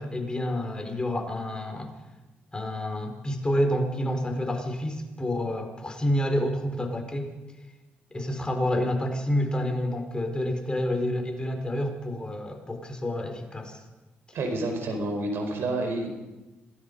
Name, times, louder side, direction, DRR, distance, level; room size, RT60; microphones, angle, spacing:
voice 1, 0.0-1.9 2.5-7.3 8.1-13.8, left 1 dB, 20° left, 4 dB, 4.4 m, -28 dB
voice 2, 14.3-16.1, right 2 dB, 70° right, 5 dB, 4.8 m, -29 dB
27.0 x 18.0 x 5.4 m, 1.1 s
cardioid pair, 80°, 4 cm